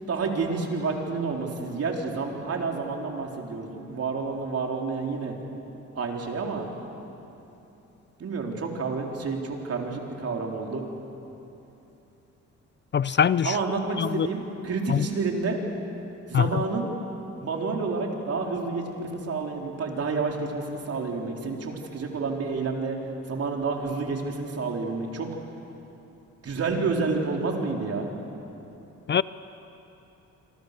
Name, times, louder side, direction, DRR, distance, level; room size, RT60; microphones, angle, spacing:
voice 1, 0.1-5.4 5.9-6.7 8.2-10.8 13.4-15.6 16.3-16.9 17.4-23.0 23.3-25.3 26.4-28.1, right 4 dB, 50° right, 1 dB, 4.0 m, -29 dB
voice 2, 12.9-13.6 14.0-14.3 14.9-15.1 16.3-16.6 29.1-29.2, left 8 dB, 40° left, 17 dB, 0.5 m, -23 dB
27.0 x 26.0 x 6.8 m, 3.0 s
cardioid pair, 90°, 30 cm